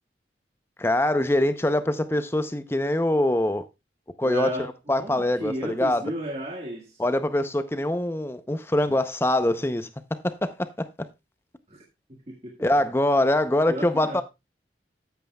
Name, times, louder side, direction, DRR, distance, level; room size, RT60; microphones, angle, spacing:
voice 1, 0.8-3.6 4.2-4.6 4.9-6.0 7.0-11.1 12.6-14.2, left 1 dB, 15° left, 0.6 m, -24 dB
voice 2, 4.2-4.7 5.0-7.0 11.7-11.8 12.3-12.6 13.7-14.2, right 1 dB, 35° right, 1.6 m, -33 dB
14.0 x 9.3 x 2.3 m
head